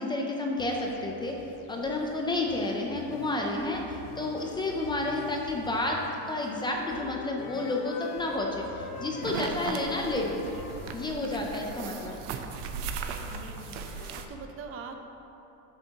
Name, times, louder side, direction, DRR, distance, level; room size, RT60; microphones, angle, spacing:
voice 1, 0.0-1.4 1.7-6.0 6.3-10.3 10.9-12.1, left 2 dB, 15° left, 0 dB, 0.5 m, -30 dB
sound 1, 0.6-14.3, left 5 dB, 60° left, 0.7 m, -48 dB
Wind instrument woodwind instrument, 5.7-8.4 8.7-12.3, left 3 dB, 80° left, 1.2 m, -45 dB
sound 2, 9.2-14.3, right 6 dB, 85° right, 0.7 m, -37 dB
voice 2, 13.1-15.0, right 5 dB, 40° right, 5 dB, 0.6 m, -44 dB
10.5 x 8.0 x 2.9 m, 3.0 s
cardioid pair, 155°, 35 cm